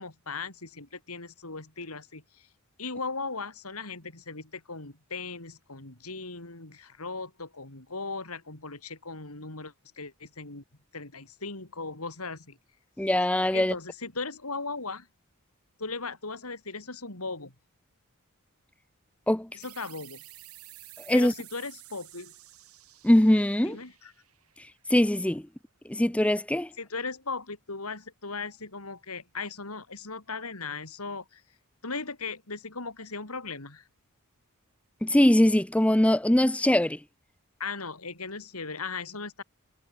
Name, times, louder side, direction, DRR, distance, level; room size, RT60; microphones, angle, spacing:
voice 1, 0.0-2.2 2.8-10.6 10.9-12.6 13.5-15.1 15.8-17.5 19.5-20.2 21.1-22.3 23.6-24.1 26.8-31.4 31.8-33.8 37.6-39.4, left 4 dB, 85° left, 4.1 m, -38 dB
voice 2, 13.0-13.7 19.3-19.5 21.1-21.3 23.0-23.8 24.9-25.4 25.9-26.7 35.0-37.0, left 1 dB, 5° left, 0.5 m, -22 dB
sound 1, 19.6-24.9, right 16 dB, 80° right, 7.8 m, -51 dB
head